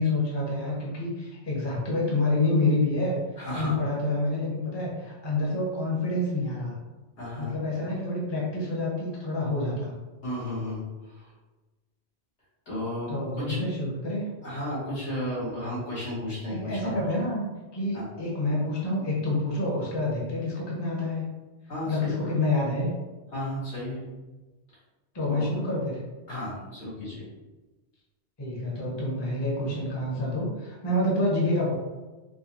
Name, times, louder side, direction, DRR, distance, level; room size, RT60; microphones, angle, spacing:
voice 1, 0.0-6.7 7.4-9.9 13.1-14.2 16.5-17.4 17.7-21.2 21.8-22.9 25.1-26.0 28.4-31.7, left 2 dB, 25° left, -4 dB, 0.8 m, -28 dB
voice 2, 3.4-3.8 7.2-7.5 10.2-11.3 12.7-13.6 14.4-16.9 17.9-18.0 21.7-22.1 23.3-24.0 25.3-25.5 26.3-27.2, left 1 dB, 80° left, -9 dB, 2.0 m, -33 dB
4.5 x 2.2 x 2.9 m, 1.2 s
omnidirectional pair, 1.1 m